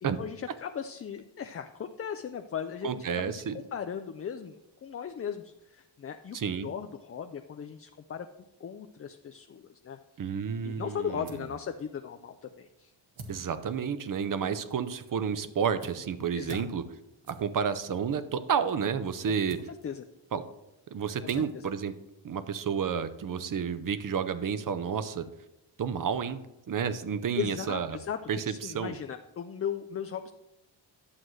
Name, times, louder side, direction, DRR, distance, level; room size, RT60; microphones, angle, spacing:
voice 1, 0.0-8.3 8.6-10.0 10.6-12.9 16.3-16.7 19.3-19.4 19.8-20.0 21.2-21.7 27.4-28.2 28.5-30.3, left 8 dB, 30° left, 6 dB, 0.4 m, -37 dB
voice 2, 2.8-3.6 6.3-6.7 10.2-11.3 13.3-16.8 17.3-19.6 20.3-20.4 20.9-21.9 22.2-25.3 25.8-26.4 26.7-28.0 28.3-28.9, right 7 dB, 45° right, 12 dB, 0.7 m, -31 dB
sound 1, 10.7-22.8, right 2 dB, 70° right, 1.7 m, -53 dB
11.5 x 7.6 x 3.2 m, 0.94 s
wide cardioid pair, 120°, 47 cm